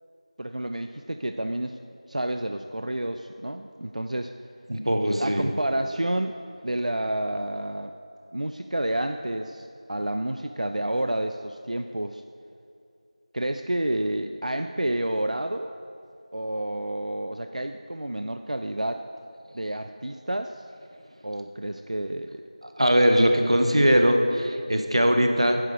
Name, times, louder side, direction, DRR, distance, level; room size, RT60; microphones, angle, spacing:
voice 1, 0.4-1.8 2.1-4.3 5.2-7.9 8.3-12.2 13.3-15.8 16.3-19.0 19.5-20.6 21.2-22.4, right 1 dB, 80° right, 7 dB, 0.4 m, -30 dB
voice 2, 4.7-5.5 22.8-25.6, equal, 50° right, 5 dB, 0.9 m, -21 dB
9.7 x 5.0 x 6.7 m, 2.5 s
figure-of-eight pair, 180°, 4 cm